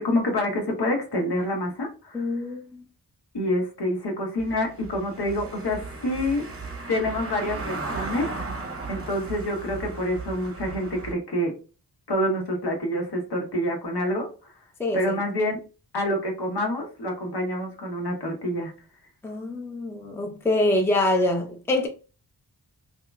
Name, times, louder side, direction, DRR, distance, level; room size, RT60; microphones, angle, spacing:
voice 1, 0.0-2.2 3.3-6.5 6.9-8.3 8.9-11.5 12.1-14.3 14.9-15.6 15.9-18.7, left 1 dB, 65° left, 1.3 m, -27 dB
voice 2, 2.1-2.8 14.8-15.2 19.2-21.9, left 1 dB, 5° left, 0.6 m, -25 dB
Car passing by / Engine, 4.4-11.1, right 3 dB, 30° right, 0.8 m, -36 dB
3.6 x 2.8 x 2.3 m
wide cardioid pair, 95°, 43 cm